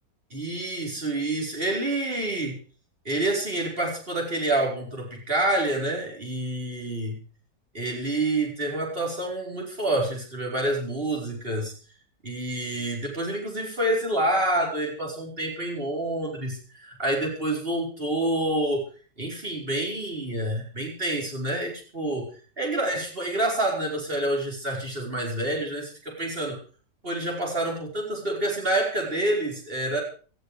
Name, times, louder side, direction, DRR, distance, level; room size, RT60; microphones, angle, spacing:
voice 1, 0.3-2.6 3.1-7.2 7.7-11.7 12.2-18.8 19.2-22.3 22.6-26.6 27.0-30.0, right 1 dB, 30° right, -1 dB, 5.1 m, -28 dB
18.5 x 13.0 x 5.0 m, 0.39 s
omnidirectional pair, 1.8 m